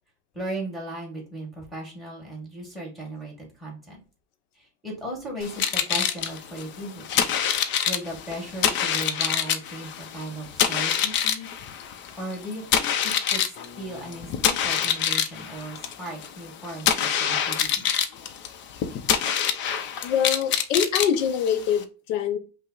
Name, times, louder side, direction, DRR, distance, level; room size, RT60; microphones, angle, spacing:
voice 1, 0.3-4.0 4.5-7.3 7.8-11.5 12.2-13.5 13.7-17.9, right 1 dB, ahead, -1 dB, 1.4 m, -37 dB
sound 1, 5.4-21.8, left 8 dB, 35° left, 0.4 m, -26 dB
voice 2, 20.0-22.4, left 8 dB, 90° left, 10 dB, 0.9 m, -24 dB
5.5 x 2.0 x 3.7 m, 0.35 s
cardioid pair, 155°, 35 cm